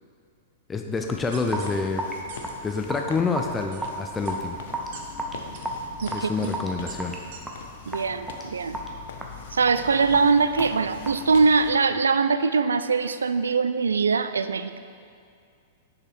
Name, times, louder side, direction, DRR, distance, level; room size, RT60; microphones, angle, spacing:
voice 1, 0.7-2.0 2.6-4.6 6.1-7.2, left 4 dB, 15° left, 3 dB, 0.5 m, -27 dB
sound 1, 0.9-11.7, left 6 dB, 60° left, 0.7 m, -43 dB
sound 2, 1.3-1.8 2.3-2.4 2.7-3.0 3.7-3.8 4.2-4.3 4.9-5.0 5.5-5.6 6.0-6.1 6.4-6.5 6.9-7.0 7.3-7.4 7.9-8.0, right 7 dB, 55° right, 1.0 m, -43 dB
Raindrop / Drip, 1.5-12.0, right 1 dB, 10° right, 0.8 m, -35 dB
voice 2, 6.0-6.5 7.9-8.8 9.5-14.8, right 4 dB, 75° right, 11 dB, 0.3 m, -22 dB
6.7 x 5.6 x 4.8 m, 2.3 s
figure-of-eight pair, 100°, 0 cm